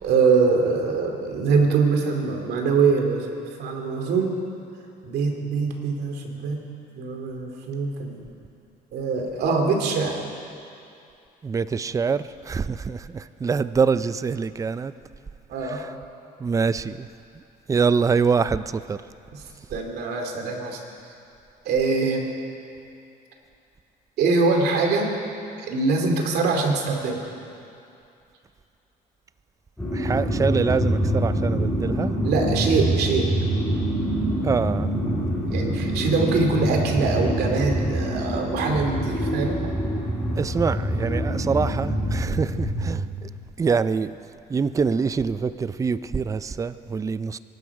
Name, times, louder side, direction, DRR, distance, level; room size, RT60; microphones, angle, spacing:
voice 1, 0.0-3.3 3.6-4.3 5.0-6.6 7.0-8.3 8.9-10.2 15.5-15.9 19.3-19.4 19.7-20.8 21.6-22.3 24.2-25.1 25.7-27.2 32.2-33.3 35.5-39.7, right 4 dB, 75° right, 2 dB, 2.6 m, -23 dB
voice 2, 11.4-14.9 15.6-15.9 16.4-17.1 17.7-19.0 29.9-32.2 34.4-34.9 40.4-43.3 43.6-44.1 44.5-47.4, right 5 dB, 20° right, 14 dB, 0.4 m, -25 dB
sound 1, 29.8-42.9, right 1 dB, 5° left, 4.4 m, -25 dB
23.5 x 12.0 x 4.8 m, 2.6 s
cardioid pair, 110°, 17 cm